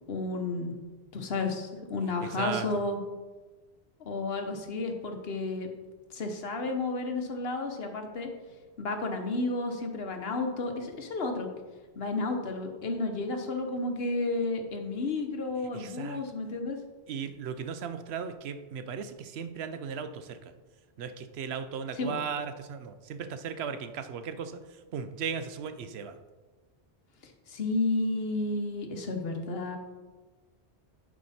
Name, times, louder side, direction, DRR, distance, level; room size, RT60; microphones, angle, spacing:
voice 1, 0.1-0.7 1.1-3.0 4.0-5.7 6.1-8.3 8.8-11.5 11.9-16.8 21.9-22.2 27.2-29.8, left 3 dB, 65° left, 4 dB, 1.2 m, -32 dB
voice 2, 2.2-2.7 15.7-16.2 17.1-20.5 21.0-24.7 24.9-26.2, right 6 dB, 75° right, 10 dB, 0.9 m, -36 dB
10.5 x 4.8 x 4.2 m, 1.3 s
omnidirectional pair, 1.1 m